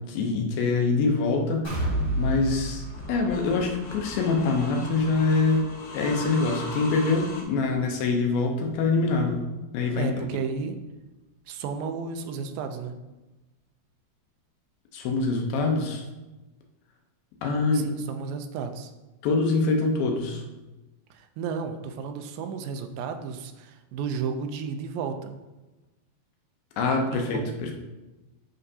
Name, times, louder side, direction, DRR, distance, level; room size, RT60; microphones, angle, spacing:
voice 1, 0.0-1.7 2.2-2.8 3.1-10.2 14.9-16.0 17.4-17.9 19.2-20.4 26.8-27.7, left 3 dB, 80° left, 2 dB, 2.6 m, -25 dB
sound 1, 1.6-9.4 9.8-10.0 10.4-10.5, right 1 dB, 10° left, 1.2 m, -34 dB
sound 2, 2.7-7.4, left 2 dB, 60° left, 2.5 m, -40 dB
voice 2, 10.0-10.8 11.5-12.9 17.7-18.9 21.1-25.4 27.1-27.6, right 5 dB, 80° right, 7 dB, 2.3 m, -33 dB
7.8 x 5.6 x 2.7 m, 1.1 s
omnidirectional pair, 4.2 m